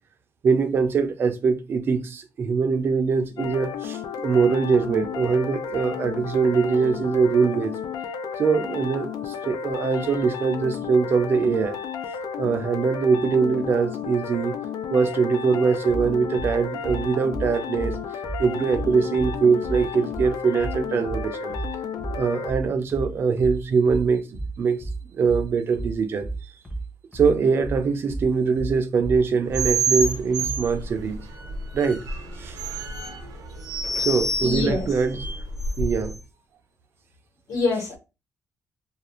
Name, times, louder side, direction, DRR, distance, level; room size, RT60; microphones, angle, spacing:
voice 1, 0.4-7.7 8.4-11.8 12.4-14.6 14.9-17.9 18.4-21.6 22.2-24.9 25.1-26.3 27.1-31.2 31.7-32.0 32.4-32.6 33.9-35.2 35.8-36.1 37.7-37.9, right 5 dB, 40° right, 0.4 m, -22 dB
sound 1, 3.4-22.5, left 7 dB, 80° left, 0.4 m, -33 dB
sound 2, 15.9-30.7, right 3 dB, 10° left, 0.6 m, -32 dB
sound 3, 29.5-36.2, right 3 dB, 75° right, 0.7 m, -28 dB
voice 2, 34.4-34.9 37.5-38.0, left 3 dB, 65° left, 1.2 m, -25 dB
2.4 x 2.3 x 2.9 m
cardioid pair, 180°, 6 cm